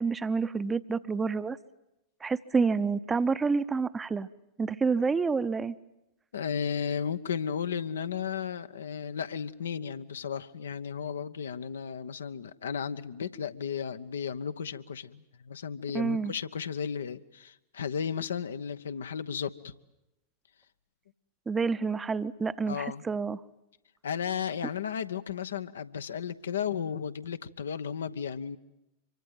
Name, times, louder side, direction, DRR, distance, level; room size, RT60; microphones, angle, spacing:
voice 1, 0.0-1.6 2.2-4.3 4.6-5.7 15.9-16.3 21.5-23.4, right 4 dB, 15° right, 14 dB, 0.9 m, -28 dB
voice 2, 6.3-19.7 22.7-23.0 24.0-28.6, left 7 dB, 65° left, 11 dB, 1.1 m, -34 dB
26.0 x 24.5 x 9.1 m, 0.91 s
figure-of-eight pair, 90°, 0 cm